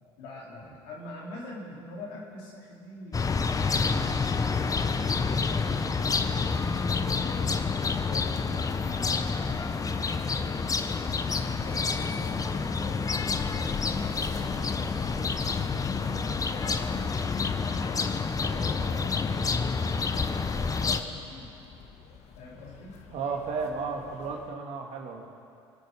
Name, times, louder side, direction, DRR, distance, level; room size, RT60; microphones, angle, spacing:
voice 1, 0.2-4.5 5.5-9.8 10.2-10.7 11.2-13.1 13.5-17.1 17.6-21.5 22.4-23.0, left 3 dB, 70° left, -5 dB, 4.6 m, -44 dB
sound 1, 3.1-21.0, left 4 dB, 25° left, 1.0 m, -28 dB
sound 2, 5.8-24.5, left 5 dB, 50° left, 1.7 m, -47 dB
voice 2, 23.1-25.3, right 4 dB, 50° right, 1 dB, 2.6 m, -33 dB
25.5 x 9.3 x 5.6 m, 2.5 s
hypercardioid pair, 65°, 14 cm